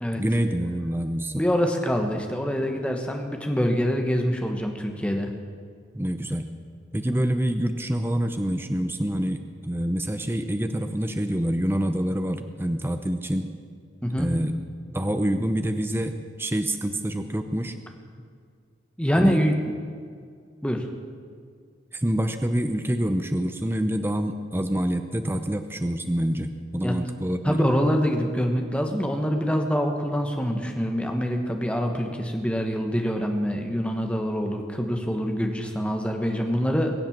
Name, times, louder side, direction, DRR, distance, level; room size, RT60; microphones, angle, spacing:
voice 1, 0.1-1.4 5.9-6.5 6.9-13.5 14.2-14.5 14.9-17.8 19.1-19.4 21.9-27.6, right 1 dB, 10° right, 8 dB, 0.6 m, -26 dB
voice 2, 1.3-5.3 14.0-14.3 19.0-19.6 20.6-20.9 26.8-27.0 27.4-36.9, equal, 5° left, 3 dB, 1.3 m, -25 dB
22.0 x 7.9 x 7.4 m, 2.2 s
head